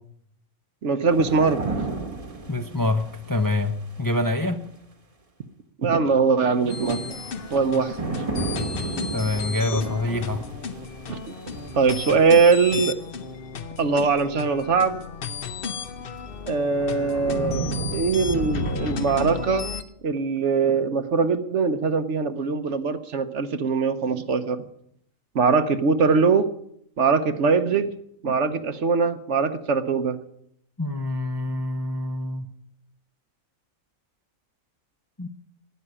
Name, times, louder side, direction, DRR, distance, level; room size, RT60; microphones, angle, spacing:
voice 1, 0.8-1.9 5.8-7.2 7.5-8.0 11.1-11.2 11.7-12.9 13.8-15.0 16.5-19.7 20.0-24.6 25.3-26.5 27.0-27.9 28.2-30.2, right 4 dB, 60° right, 10 dB, 1.2 m, -22 dB
sound 1, 1.1-4.2 6.6-12.9 15.5-15.6 16.2-19.0, right 3 dB, 25° right, 1.3 m, -33 dB
voice 2, 2.5-4.6 8.9-10.5 30.8-32.5 35.2-35.3, left 2 dB, 20° left, 6 dB, 0.7 m, -26 dB
sound 2, 6.7-19.8, left 6 dB, 50° left, 0.9 m, -34 dB
12.5 x 9.5 x 9.8 m, 0.72 s
omnidirectional pair, 1.4 m